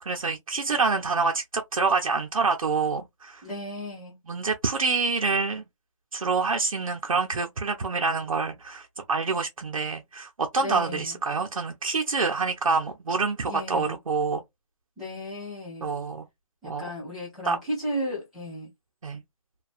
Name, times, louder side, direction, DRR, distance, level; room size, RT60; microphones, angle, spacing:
voice 1, 0.0-3.4 4.3-5.6 6.1-14.4 15.8-16.3 16.6-16.9 17.5-17.6 19.0-19.2, right 4 dB, 80° right, 0.6 m, -27 dB
voice 2, 3.4-4.2 10.6-11.2 13.5-14.0 15.0-15.9 16.6-18.7, equal, ahead, 0.6 m, -34 dB
2.4 x 2.2 x 2.4 m
hypercardioid pair, 170°, 17 cm